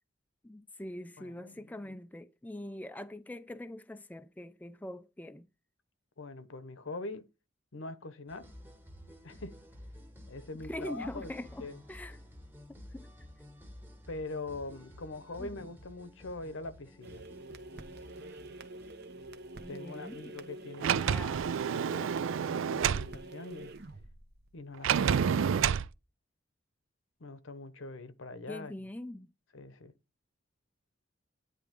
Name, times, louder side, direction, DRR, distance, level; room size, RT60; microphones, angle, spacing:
voice 1, 0.4-5.5 10.7-12.2 12.7-13.1 15.4-15.7 19.6-20.2 20.9-21.4 28.5-29.3, left 1 dB, 10° left, 0.4 m, -43 dB
voice 2, 1.2-2.0 6.2-7.3 7.7-8.5 9.2-9.6 10.3-11.3 11.6-11.8 14.1-17.2 19.7-21.1 21.7-22.2 22.5-23.7 24.5-25.8 27.2-28.7 29.5-29.9, left 2 dB, 80° left, 1.0 m, -43 dB
sound 1, 8.3-20.2, left 1 dB, 10° right, 1.1 m, -52 dB
sound 2, 17.0-25.0, right 2 dB, 55° right, 0.9 m, -47 dB
Sliding door, 20.8-23.1 24.8-25.9, right 7 dB, 80° right, 0.4 m, -28 dB
9.6 x 3.5 x 5.1 m
head